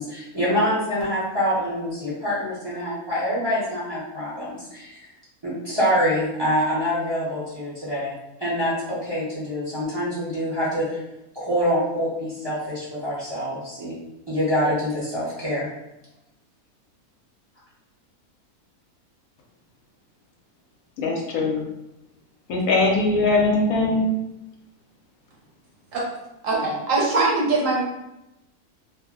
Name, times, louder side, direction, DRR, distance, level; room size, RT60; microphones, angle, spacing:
voice 1, 0.0-5.1 5.4-8.1 8.4-11.0 11.3-13.9 14.3-15.7, equal, 25° right, -9 dB, 0.7 m, -25 dB
voice 2, 21.0-21.6 22.5-24.0, left 3 dB, 70° left, -1 dB, 1.0 m, -21 dB
voice 3, 26.4-27.8, right 3 dB, 65° right, -3 dB, 1.0 m, -22 dB
2.6 x 2.0 x 3.5 m, 0.90 s
omnidirectional pair, 1.6 m